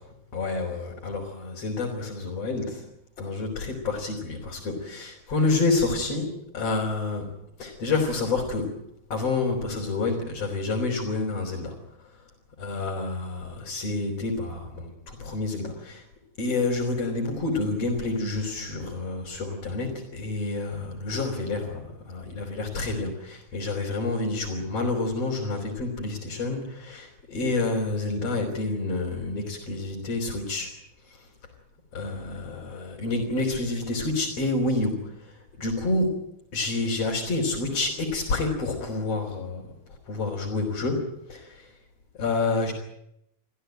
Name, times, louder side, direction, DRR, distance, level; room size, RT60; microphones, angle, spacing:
voice 1, 0.3-2.8 3.2-7.3 7.6-8.8 9.1-11.8 12.6-16.0 16.4-30.7 31.1-31.2 31.9-39.6 40.1-41.7 42.2-42.7, left 3 dB, 55° left, -3 dB, 5.1 m, -28 dB
27.0 x 15.5 x 9.2 m, 0.79 s
omnidirectional pair, 3.3 m